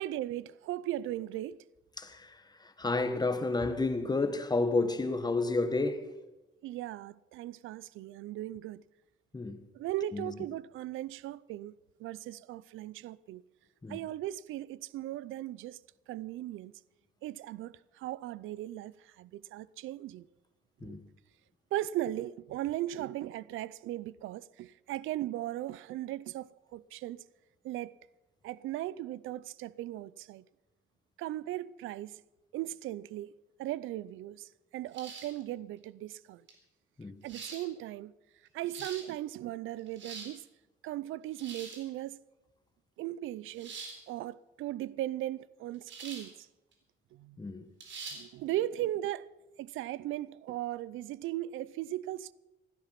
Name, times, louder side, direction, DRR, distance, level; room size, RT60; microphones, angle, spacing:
voice 1, 0.0-1.6 6.6-8.8 9.7-11.7 12.0-13.4 13.9-15.8 16.1-16.7 17.2-20.3 20.8-21.0 21.7-27.2 27.6-27.9 28.4-30.4 31.2-32.2 32.5-33.3 33.6-36.4 37.2-38.1 38.5-40.4 40.8-42.2 43.0-43.7 44.1-46.5 47.1-47.4 48.1-49.3 49.6-52.3, right 14 dB, 85° right, 0.5 m, -37 dB
voice 2, 2.0-6.1 9.3-9.6 10.1-10.3 13.8-14.0 20.8-21.0 37.0-37.2 47.4-47.7, left 3 dB, 20° left, 1.5 m, -31 dB
sound 1, 34.9-35.4 36.5-36.6 37.2-37.6 38.5-39.0 39.8-40.3 41.3-41.8 43.6-44.0 45.9-46.3 46.7-46.8 47.8-48.2, right 4 dB, 70° right, 3.9 m, -44 dB
15.5 x 13.0 x 5.8 m
cardioid pair, 90°, 20 cm